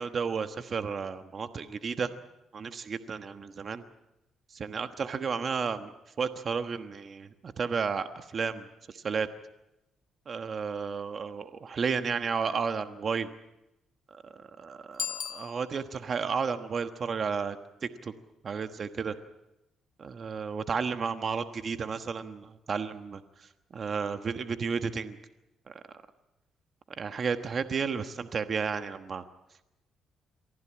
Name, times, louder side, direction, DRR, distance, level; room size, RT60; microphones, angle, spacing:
voice 1, 0.0-2.1 2.5-3.8 4.5-5.9 6.2-9.3 10.3-13.3 14.6-17.6 17.8-18.1 18.4-19.1 20.0-23.2 23.7-25.2 25.7-25.8 27.0-29.2, right 5 dB, 45° right, 9 dB, 1.2 m, -32 dB
Bicycle bell, 14.9-16.1, left 8 dB, 55° left, 3.1 m, -37 dB
23.5 x 15.0 x 8.7 m, 0.92 s
cardioid pair, 90°, 0 cm